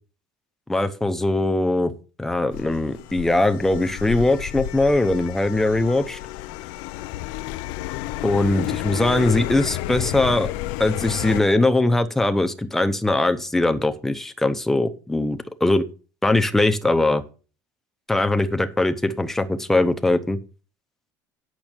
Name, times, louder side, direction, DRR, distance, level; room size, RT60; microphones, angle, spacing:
voice 1, 0.7-1.9 2.2-6.2 8.2-10.5 10.8-15.9 16.2-17.2 18.1-20.4, left 2 dB, 5° left, 9 dB, 0.7 m, -21 dB
sound 1, 2.5-11.4, left 16 dB, 70° left, 0.5 m, -31 dB
9.0 x 6.3 x 6.2 m, 0.36 s
cardioid pair, 170°, 8 cm